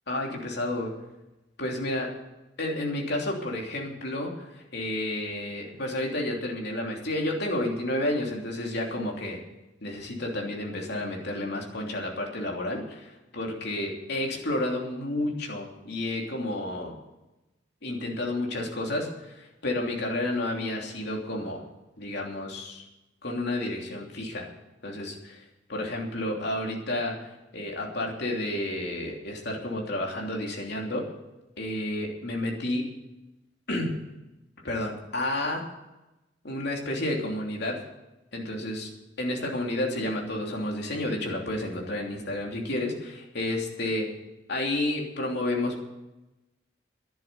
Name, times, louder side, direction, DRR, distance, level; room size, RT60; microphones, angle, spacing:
voice 1, 0.1-0.9 1.6-2.1 2.6-9.4 9.8-17.0 17.8-21.6 22.0-22.8 23.2-24.5 24.8-25.4 25.7-27.3 27.5-31.1 31.6-32.9 33.7-34.0 34.6-35.6 36.4-37.8 38.3-38.9 39.2-44.1 44.5-45.8, left 1 dB, 60° left, 0 dB, 3.1 m, -31 dB
11.5 x 10.5 x 8.1 m, 0.99 s
head